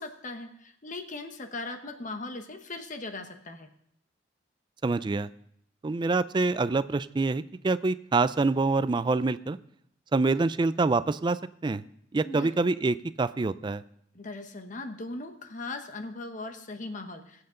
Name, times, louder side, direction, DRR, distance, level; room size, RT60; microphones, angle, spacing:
voice 1, 0.0-3.7 12.2-12.5 14.1-17.4, left 2 dB, 45° left, 6 dB, 1.0 m, -39 dB
voice 2, 4.8-5.3 5.8-9.6 10.1-11.4 11.6-11.8 12.1-13.8, right 3 dB, 25° right, 15 dB, 0.4 m, -26 dB
21.0 x 7.9 x 3.8 m, 0.70 s
head